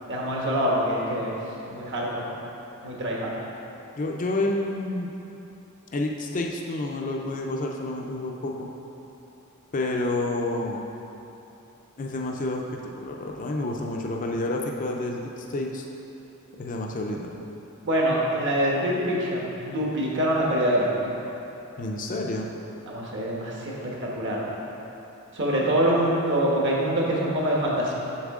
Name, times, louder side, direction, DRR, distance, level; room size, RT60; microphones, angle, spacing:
voice 1, 0.1-1.3 1.7-2.3 2.8-3.3 17.8-21.1 22.9-24.5 25.3-27.9, right 1 dB, 55° right, -3 dB, 1.3 m, -25 dB
voice 2, 4.0-5.1 5.9-8.7 9.7-10.8 12.0-12.6 13.0-15.8 16.6-17.3 21.8-22.5, left 2 dB, 35° left, 0 dB, 0.5 m, -29 dB
7.2 x 6.5 x 3.6 m, 2.9 s
head